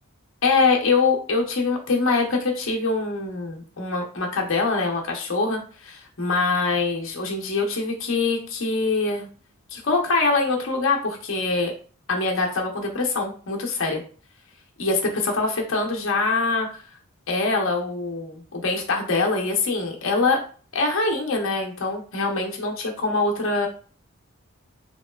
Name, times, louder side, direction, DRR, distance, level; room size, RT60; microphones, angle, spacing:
voice 1, 0.4-9.3 9.7-11.7 12.1-14.0 14.8-16.8 17.3-20.4 20.7-23.7, left 3 dB, 60° left, 0 dB, 0.7 m, -24 dB
3.0 x 2.9 x 2.3 m, 0.40 s
head